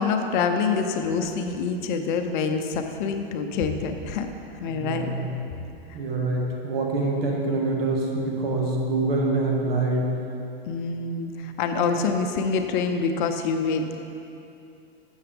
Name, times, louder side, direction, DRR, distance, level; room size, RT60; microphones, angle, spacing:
voice 1, 0.0-4.3 4.6-5.1 10.7-14.0, left 5 dB, 50° left, 6 dB, 0.6 m, -26 dB
voice 2, 4.7-5.3 5.9-10.1, right 2 dB, 70° right, 0 dB, 1.4 m, -25 dB
7.2 x 6.7 x 3.5 m, 2.7 s
hypercardioid pair, 125°, 31 cm